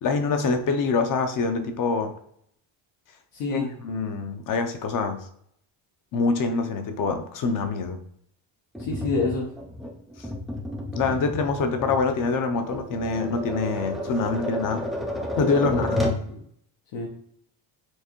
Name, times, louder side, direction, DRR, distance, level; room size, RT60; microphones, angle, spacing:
voice 1, 0.0-2.1 3.5-5.2 6.1-8.0 11.0-14.8 15.4-16.0, left 4 dB, 45° left, 7 dB, 0.6 m, -25 dB
voice 2, 3.3-3.7 8.8-9.5 15.6-16.4 16.9-17.1, left 3 dB, 85° left, -3 dB, 0.9 m, -28 dB
Tap, 8.8-16.3, left 1 dB, ahead, 0.3 m, -31 dB
4.6 x 2.6 x 3.0 m, 0.68 s
cardioid pair, 140°, 44 cm